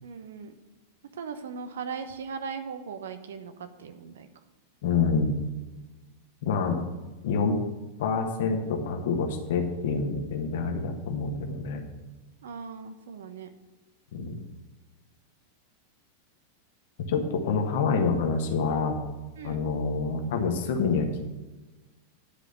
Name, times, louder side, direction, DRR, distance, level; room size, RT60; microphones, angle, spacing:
voice 1, 0.0-0.5 1.1-4.3 12.4-13.5 19.3-19.6, right 5 dB, 60° right, 9 dB, 0.9 m, -38 dB
voice 2, 4.8-5.4 6.4-6.8 7.2-7.5 8.0-11.9 14.1-14.4 17.1-19.0 19.4-21.2, left 4 dB, 55° left, 4 dB, 1.5 m, -27 dB
10.0 x 4.9 x 7.9 m, 1.2 s
figure-of-eight pair, 90°, 0 cm